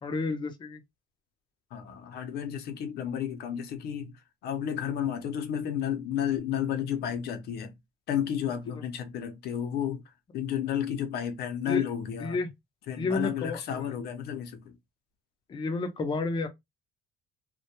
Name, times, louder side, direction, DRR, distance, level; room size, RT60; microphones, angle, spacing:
voice 1, 0.0-0.8 8.7-8.9 11.7-11.8 12.2-12.5 13.0-13.8 15.5-16.5, left 3 dB, 30° left, 0.5 m, -31 dB
voice 2, 1.7-4.1 4.4-7.7 8.1-10.0 10.3-12.4 12.9-14.7, left 9 dB, 70° left, 0.6 m, -32 dB
2.2 x 2.1 x 2.8 m
cardioid pair, 110°, 17 cm